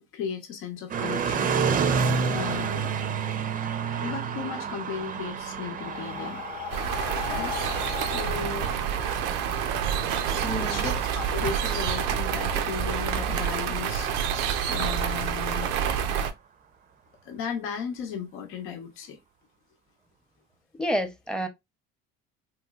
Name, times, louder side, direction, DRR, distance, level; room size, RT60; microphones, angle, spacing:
voice 1, 0.1-1.6 2.3-2.9 4.0-6.4 7.2-7.5 8.0-8.8 10.5-14.4 14.7-15.7 17.2-19.2, left 7 dB, 75° left, 0.8 m, -36 dB
sound 1, 0.9-14.9, right 6 dB, 40° right, 0.5 m, -31 dB
Breathing, 5.0-9.7, left 10 dB, 45° left, 0.5 m, -38 dB
sound 2, 6.7-16.3, right 8 dB, 90° right, 0.5 m, -28 dB
voice 2, 10.4-10.9 20.8-21.5, equal, 5° left, 0.7 m, -29 dB
3.1 x 3.0 x 2.3 m
supercardioid pair, 100°, 21 cm